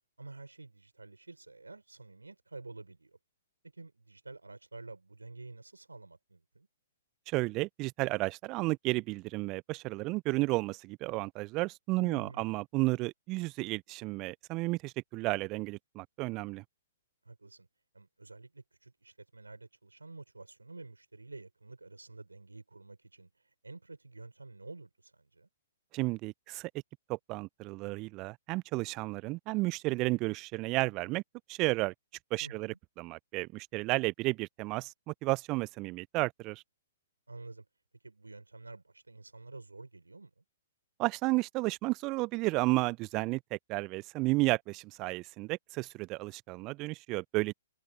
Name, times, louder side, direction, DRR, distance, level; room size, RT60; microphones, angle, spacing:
voice 1, 0.2-3.2 3.7-6.7 12.0-12.6 17.2-17.7 17.9-25.5 32.4-32.8 37.3-37.6 38.0-40.4, right 3 dB, 80° right, 6.3 m, -49 dB
voice 2, 7.3-16.6 25.9-26.7 27.1-31.2 31.5-31.9 32.3-36.6 41.0-47.5, right 22 dB, 30° right, 0.8 m, -32 dB
figure-of-eight pair, 115°, 0 cm